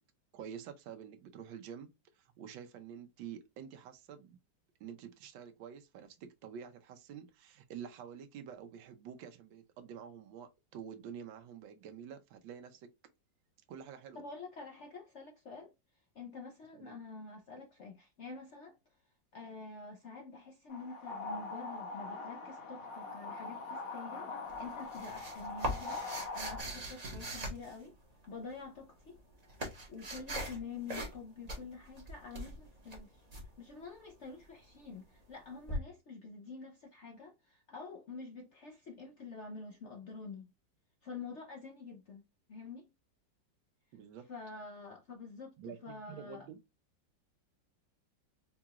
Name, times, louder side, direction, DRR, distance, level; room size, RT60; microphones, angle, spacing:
voice 1, 0.3-1.9 2.2-4.4 4.8-12.9 13.7-14.2 16.7-17.0 43.9-44.3 45.6-46.6, right 8 dB, 85° right, 1.4 m, -48 dB
voice 2, 14.1-15.7 16.1-18.8 19.3-27.9 28.3-29.2 29.9-33.3 33.6-40.5 41.0-42.2 42.5-42.9 44.3-46.5, left 4 dB, 75° left, 0.6 m, -47 dB
sound 1, 20.7-26.6, left 3 dB, 55° left, 1.3 m, -42 dB
sound 2, 24.5-28.3 29.0-30.6 30.9-31.2 31.5-33.4 35.7-35.8, right 1 dB, 30° right, 0.8 m, -41 dB
4.6 x 2.4 x 2.8 m
omnidirectional pair, 2.0 m